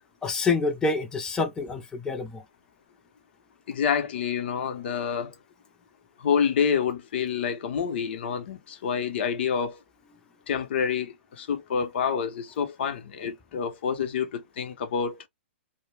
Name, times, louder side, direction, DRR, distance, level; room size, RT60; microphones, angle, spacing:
voice 1, 0.2-2.4, left 4 dB, 10° left, 0.5 m, -27 dB
voice 2, 3.7-5.3 6.2-9.8 10.5-15.2, left 7 dB, 60° left, 0.7 m, -28 dB
2.1 x 2.1 x 3.2 m
hypercardioid pair, 130°, 7 cm